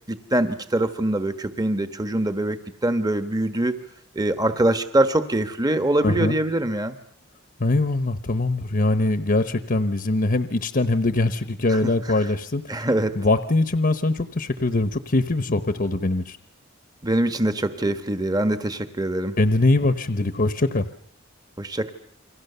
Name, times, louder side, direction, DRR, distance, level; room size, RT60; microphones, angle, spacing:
voice 1, 0.1-3.8 4.1-7.0 11.7-11.8 12.7-13.2 17.0-19.4 21.6-21.9, right 1 dB, 20° right, 9 dB, 1.3 m, -23 dB
voice 2, 6.0-6.4 7.6-12.9 13.1-16.4 19.4-20.9, left 2 dB, 45° left, 10 dB, 1.0 m, -22 dB
29.0 x 24.0 x 6.9 m, 0.64 s
head